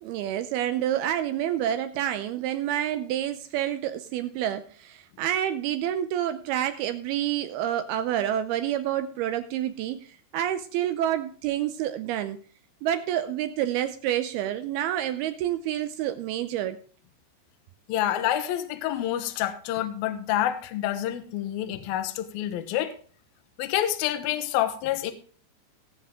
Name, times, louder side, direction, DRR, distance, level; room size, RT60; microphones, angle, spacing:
voice 1, 0.0-12.4 12.8-16.8, right 11 dB, 80° right, 10 dB, 2.3 m, -28 dB
voice 2, 17.9-22.9 23.6-25.1, left 12 dB, 70° left, 8 dB, 2.5 m, -28 dB
18.5 x 7.3 x 3.7 m, 0.43 s
omnidirectional pair, 4.9 m